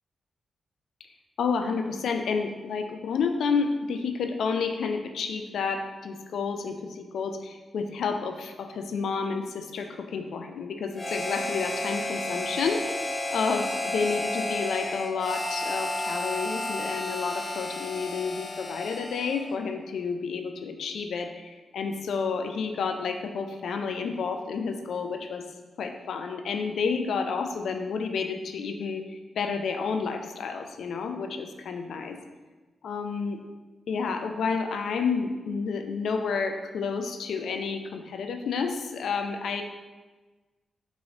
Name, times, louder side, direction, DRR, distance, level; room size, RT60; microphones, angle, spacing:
voice 1, 1.4-25.4 25.8-32.2 32.8-33.4 33.9-39.6, left 5 dB, 75° left, 5 dB, 0.4 m, -30 dB
Harmonica, 10.9-19.6, left 1 dB, 35° left, 0.8 m, -32 dB
5.2 x 3.1 x 2.9 m, 1.2 s
supercardioid pair, 40°, 0 cm